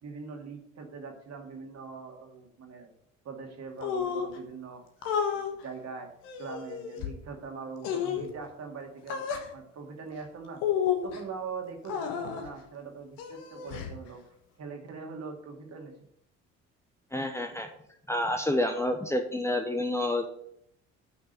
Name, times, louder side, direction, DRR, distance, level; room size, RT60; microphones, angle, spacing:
voice 1, 0.0-2.9 3.2-4.8 5.3-6.1 6.4-9.3 9.5-10.6 11.0-14.2 14.6-16.0, right 5 dB, 45° right, 3 dB, 2.4 m, -42 dB
sound 1, 3.8-4.4 5.0-5.5 6.2-7.1 7.8-8.3 9.1-9.5 10.6-11.2 11.8-12.5 13.2-14.0, left 8 dB, 65° left, 1.4 m, -31 dB
voice 2, 17.1-17.7 18.1-20.3, left 1 dB, 5° left, 5 dB, 1.0 m, -28 dB
9.0 x 5.9 x 6.6 m, 0.72 s
figure-of-eight pair, 50°, 37 cm